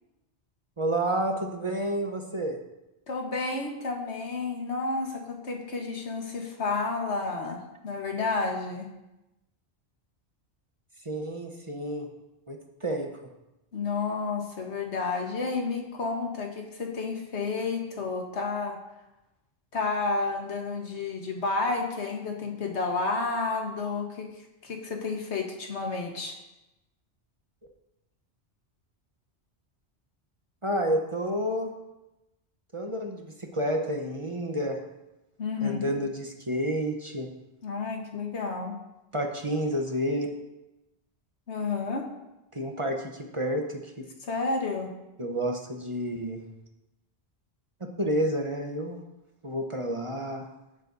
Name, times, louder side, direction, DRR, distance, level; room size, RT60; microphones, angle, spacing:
voice 1, 0.8-2.6 11.0-12.1 12.5-13.1 30.6-31.7 32.7-34.8 35.6-37.3 39.1-40.3 42.5-43.9 45.2-46.4 48.0-49.0 49.4-50.5, right 1 dB, 30° right, 2 dB, 1.0 m, -30 dB
voice 2, 3.1-8.9 13.7-18.8 19.7-24.3 24.6-26.4 35.4-35.9 37.6-38.7 41.5-42.1 44.2-44.9, left 4 dB, 80° left, 2 dB, 1.7 m, -31 dB
16.5 x 7.5 x 2.7 m, 0.96 s
omnidirectional pair, 1.1 m